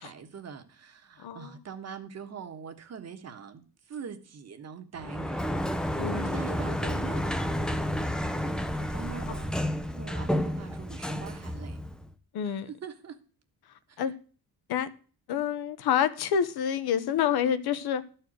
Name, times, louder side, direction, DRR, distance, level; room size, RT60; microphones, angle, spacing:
voice 1, 0.0-5.4 5.7-9.6 9.9-11.8 12.5-13.2 13.9-14.1, right 7 dB, 40° right, 1.3 m, -43 dB
voice 2, 1.2-1.5 6.0-6.4 12.3-12.7 14.0-14.1 14.7-14.9 15.3-18.0, left 8 dB, 75° left, 1.1 m, -28 dB
Sliding door, 5.0-12.1, equal, ahead, 0.5 m, -31 dB
12.5 x 4.6 x 7.7 m
cardioid pair, 160°, 38 cm